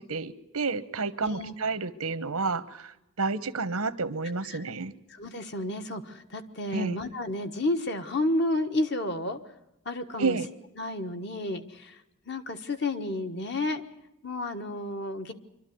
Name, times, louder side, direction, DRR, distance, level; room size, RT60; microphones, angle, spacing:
voice 1, 0.1-4.9 6.7-7.0 10.2-10.5, right 4 dB, 90° right, 14 dB, 1.1 m, -30 dB
voice 2, 1.2-1.5 4.5-4.6 5.1-9.4 9.8-10.4 10.8-12.0 12.3-13.8 14.2-15.3, left 1 dB, 50° left, 7 dB, 1.4 m, -31 dB
25.0 x 12.5 x 9.5 m, 0.91 s
head